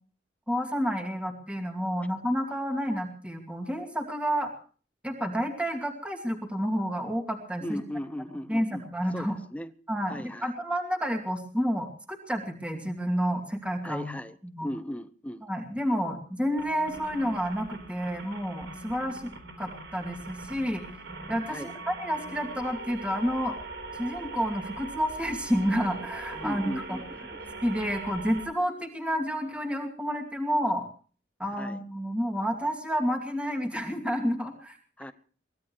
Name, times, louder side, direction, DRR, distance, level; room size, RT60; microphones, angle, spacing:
voice 1, 0.5-4.5 5.0-7.8 8.5-9.4 9.9-14.1 14.4-14.7 15.4-19.3 19.6-21.0 21.3-23.6 23.9-27.0 27.6-30.9 31.4-34.8, equal, 5° right, 2.5 m, -30 dB
voice 2, 7.6-8.8 9.1-9.7 10.1-10.5 13.8-15.4 21.5-21.7 26.3-27.3 31.6-31.8 35.0-35.1, left 1 dB, 10° left, 1.0 m, -37 dB
sound 1, 16.6-28.5, right 3 dB, 90° right, 4.4 m, -41 dB
24.0 x 19.0 x 3.1 m
head